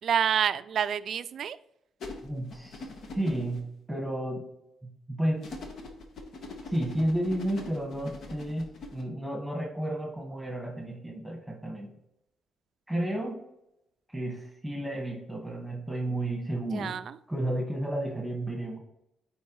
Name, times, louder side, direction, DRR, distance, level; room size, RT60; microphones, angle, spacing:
voice 1, 0.0-1.6 16.7-17.2, right 8 dB, 60° right, 15 dB, 0.3 m, -28 dB
sound 1, 2.0-3.6 5.4-9.0, left 2 dB, 65° left, 1.2 m, -42 dB
voice 2, 2.2-2.9 3.1-4.4 4.8-5.5 6.7-11.9 12.9-13.4 14.1-17.0 17.3-18.8, right 1 dB, ahead, 0 dB, 1.6 m, -32 dB
9.2 x 4.4 x 3.1 m, 0.83 s
cardioid pair, 90°, 0 cm